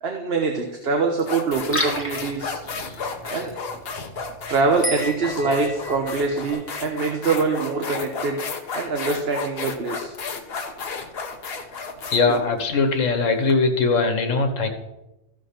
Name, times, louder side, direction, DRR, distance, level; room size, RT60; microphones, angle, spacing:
voice 1, 0.0-2.6 3.2-3.6 4.5-8.4 8.7-10.1, right 4 dB, 55° right, 3 dB, 1.2 m, -24 dB
sound 1, 0.6-0.7 1.2-13.5, left 4 dB, 50° left, 1.3 m, -33 dB
Liquid, 1.5-6.5, left 1 dB, 10° left, 1.5 m, -35 dB
sound 2, 4.8-8.2, equal, 10° right, 0.5 m, -35 dB
voice 2, 12.1-14.7, left 4 dB, 85° left, 6 dB, 1.6 m, -21 dB
14.5 x 5.2 x 5.8 m, 0.95 s
omnidirectional pair, 1.3 m